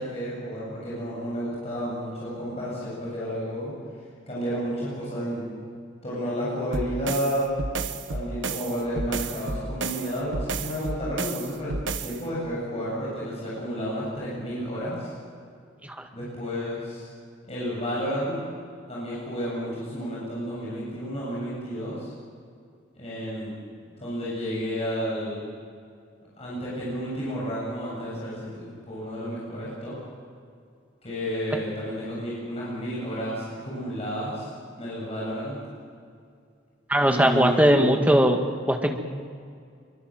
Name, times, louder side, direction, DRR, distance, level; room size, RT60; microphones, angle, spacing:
voice 1, 0.0-3.7 4.3-5.5 6.0-7.6 8.1-11.7 12.0-15.1 16.1-17.1 17.5-18.4 18.9-22.1 22.9-23.6 24.0-25.4 26.4-29.9 31.0-34.5 34.8-35.6 37.0-37.9, equal, 30° left, -7 dB, 8.0 m, -31 dB
sound 1, 6.7-12.2, right 3 dB, 70° right, 1.4 m, -31 dB
voice 2, 36.9-38.4 38.7-39.0, equal, 10° right, 3 dB, 1.8 m, -20 dB
24.5 x 23.5 x 7.8 m, 2.3 s
head